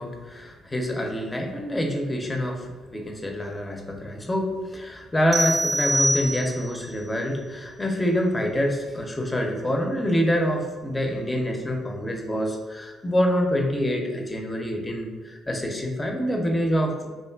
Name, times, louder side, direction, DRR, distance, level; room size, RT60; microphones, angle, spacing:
voice 1, 0.0-17.1, equal, 20° left, 2 dB, 0.5 m, -26 dB
sound 1, 5.3-6.8, right 1 dB, 40° right, 0.4 m, -24 dB
2.5 x 2.4 x 2.3 m, 1.3 s
hypercardioid pair, 50°, 0 cm